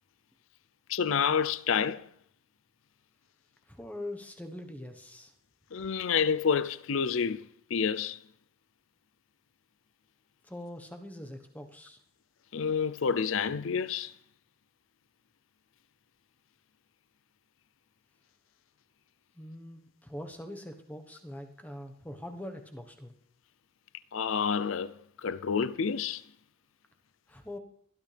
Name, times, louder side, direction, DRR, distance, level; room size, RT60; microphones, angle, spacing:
voice 1, 0.9-2.1 5.7-8.2 12.5-14.1 24.1-24.9 25.2-26.2, left 6 dB, 70° left, 0.5 m, -29 dB
voice 2, 3.7-5.3 10.4-12.0 19.3-23.1 27.3-27.6, left 1 dB, 5° left, 1.2 m, -43 dB
21.0 x 13.0 x 3.4 m
head